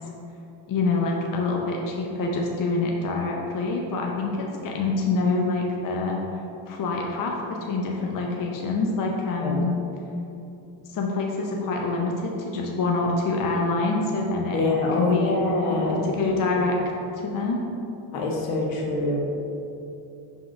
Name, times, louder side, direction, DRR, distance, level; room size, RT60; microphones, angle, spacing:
voice 1, 0.7-6.2 6.7-9.7 10.8-14.6 15.0-15.4 15.9-16.8 17.1-17.6, left 3 dB, 40° left, 0 dB, 0.7 m, -26 dB
voice 2, 14.5-16.0 18.1-19.2, left 2 dB, 80° left, -1 dB, 1.3 m, -25 dB
5.8 x 3.7 x 5.0 m, 2.8 s
cardioid pair, 145°, 49 cm